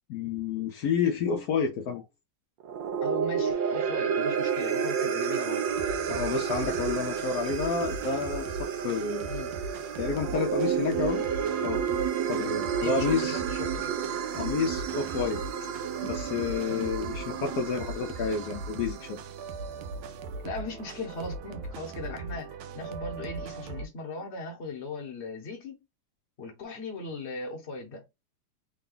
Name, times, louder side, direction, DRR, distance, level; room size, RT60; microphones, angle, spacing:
voice 1, 0.1-2.0 6.1-9.3 10.0-11.2 11.6-11.8 12.3-13.4 14.3-15.4 16.0-19.2, left 5 dB, 75° left, 0.8 m, -30 dB
sound 1, 2.6-19.1, right 7 dB, 70° right, 1.3 m, -31 dB
voice 2, 3.0-5.7 9.3-9.5 12.8-14.6 16.7-16.9 20.4-25.8 26.4-28.0, left 3 dB, 45° left, 1.0 m, -39 dB
sound 2, 5.7-23.9, right 3 dB, 85° right, 1.5 m, -40 dB
3.8 x 2.3 x 3.8 m
omnidirectional pair, 2.3 m